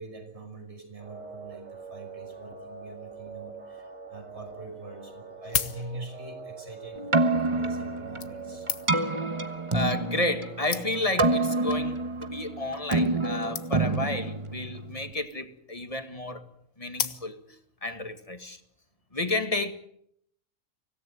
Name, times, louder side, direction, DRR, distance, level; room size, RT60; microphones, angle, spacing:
voice 1, 0.0-8.7, right 2 dB, 55° right, 6.2 m, -44 dB
sound 1, 1.0-11.1, right 4 dB, 75° right, 4.1 m, -44 dB
sound 2, 4.4-4.5 5.2-6.3 7.2-7.4 8.2-9.2 10.0-10.1 10.4-10.5 10.7-11.2 11.9-12.2 12.5-12.6 12.8-12.9 13.1-13.2 13.6-14.0 15.0-15.5 16.9-17.6 18.2-18.3, left 7 dB, 80° left, 1.6 m, -34 dB
Keyboard (musical), 7.0-15.1, right 2 dB, 25° right, 1.2 m, -28 dB
voice 2, 9.7-16.5 16.8-18.6 19.1-19.7, left 2 dB, 25° left, 2.0 m, -31 dB
25.0 x 17.0 x 9.6 m
omnidirectional pair, 1.4 m